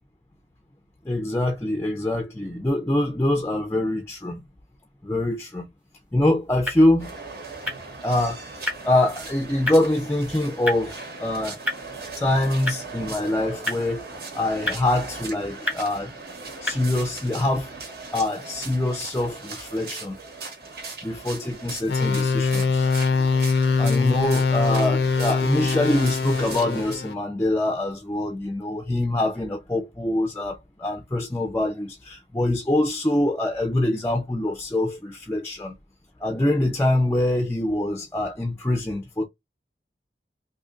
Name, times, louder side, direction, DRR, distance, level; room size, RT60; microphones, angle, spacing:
voice 1, 1.0-4.4 5.0-5.7 6.1-7.1 8.0-11.6 12.2-14.1 14.3-16.2 16.6-17.7 18.1-20.2 21.0-22.9 23.8-35.7 36.2-39.2, left 1 dB, 15° left, 0.4 m, -24 dB
sound 1, 5.8-17.1, left 2 dB, 5° right, 0.9 m, -36 dB
sound 2, 7.0-27.0, right 3 dB, 60° right, 1.1 m, -38 dB
sound 3, 21.9-27.1, left 4 dB, 75° left, 0.4 m, -22 dB
2.7 x 2.4 x 3.7 m
head